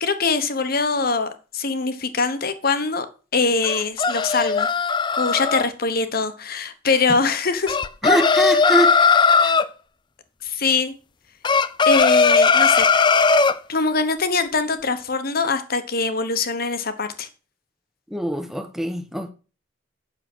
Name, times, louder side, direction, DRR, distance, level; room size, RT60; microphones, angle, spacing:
voice 1, 0.0-3.1 3.3-4.7 5.2-7.8 10.4-10.9 11.8-12.9 13.7-17.3, left 4 dB, 50° left, 1.1 m, -23 dB
sound 1, 3.6-5.6 7.7-9.7 11.4-13.6, left 5 dB, 25° left, 0.4 m, -17 dB
voice 2, 8.0-8.9 9.4-9.5 18.1-19.3, equal, ahead, 1.0 m, -23 dB
8.6 x 6.7 x 6.1 m
head